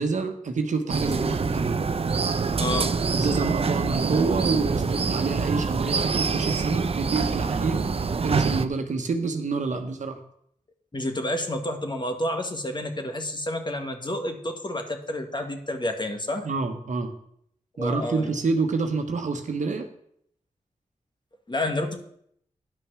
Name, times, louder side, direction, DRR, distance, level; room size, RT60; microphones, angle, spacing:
voice 1, 0.0-1.8 3.1-10.2 16.4-17.1 17.8-19.9, right 4 dB, 70° right, 5 dB, 1.2 m, -28 dB
sound 1, 0.9-8.7, right 5 dB, 50° right, 0.6 m, -25 dB
voice 2, 2.6-2.9 10.9-16.5 17.8-18.3 21.5-22.0, left 1 dB, 35° left, 5 dB, 1.7 m, -29 dB
10.0 x 5.6 x 6.2 m, 0.70 s
cardioid pair, 40°, 13 cm